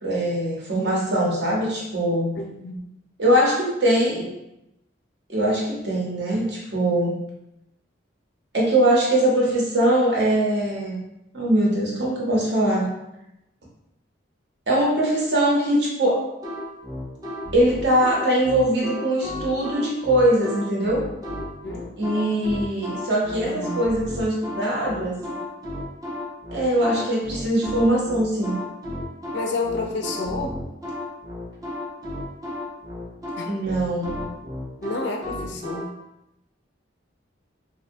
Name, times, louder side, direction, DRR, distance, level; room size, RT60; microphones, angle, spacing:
voice 1, 0.0-2.4 3.2-4.3 5.3-7.2 8.5-11.0 11.3-12.9 14.7-16.3 17.5-21.1 22.0-25.3 26.5-28.6 33.5-34.2, right 1 dB, 60° right, -4 dB, 0.7 m, -22 dB
voice 2, 2.3-2.8 21.6-21.9 23.5-23.8 29.3-30.6 33.4-33.5 34.8-35.9, left 3 dB, 60° left, 2 dB, 0.3 m, -30 dB
sound 1, 16.4-35.9, left 1 dB, 20° right, 0.3 m, -33 dB
2.6 x 2.1 x 2.5 m, 0.87 s
head